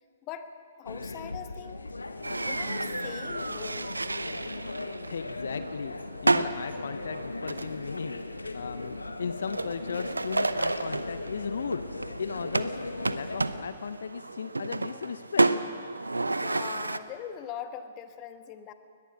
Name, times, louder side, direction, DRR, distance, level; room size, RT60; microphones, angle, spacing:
voice 1, 0.8-1.9 2.3-3.9 16.4-18.7, left 9 dB, 30° left, 9 dB, 1.3 m, -41 dB
sound 1, 0.9-13.6, left 2 dB, 80° left, 1.2 m, -38 dB
sound 2, 2.2-17.0, right 2 dB, 85° right, 0.8 m, -32 dB
voice 2, 5.1-5.9 6.2-8.2 8.5-11.8 12.2-12.8 13.1-15.5, left 6 dB, 65° left, 12 dB, 0.7 m, -36 dB
21.5 x 20.5 x 6.3 m, 2.4 s
figure-of-eight pair, 120°, 0 cm